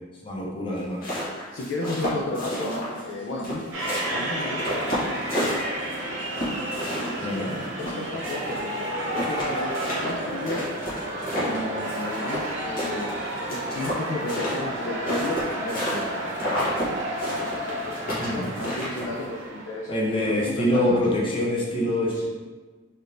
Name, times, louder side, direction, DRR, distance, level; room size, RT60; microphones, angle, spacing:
voice 1, 0.2-1.0 7.2-7.6 18.1-18.5 19.9-22.2, left 1 dB, 25° left, -3 dB, 0.6 m, -25 dB
sound 1, 0.8-3.1 3.4-6.0 6.3-8.6 8.9-9.0 9.1-12.5 12.8-16.1 16.3-16.9 17.2-19.2, equal, 45° left, 1.2 m, -30 dB
voice 2, 1.5-3.6 4.1-5.2 5.6-6.1 6.9-7.5 7.8-10.6 11.4-13.1 13.5-16.4 17.5-18.0 18.3-21.0 22.1-22.2, left 2 dB, 75° left, -2 dB, 0.4 m, -33 dB
sound 2, 2.9-14.0, equal, 25° right, 0.4 m, -44 dB
sound 3, 3.7-19.9, right 1 dB, 75° right, 0.7 m, -32 dB
3.4 x 2.8 x 2.5 m, 1.4 s
head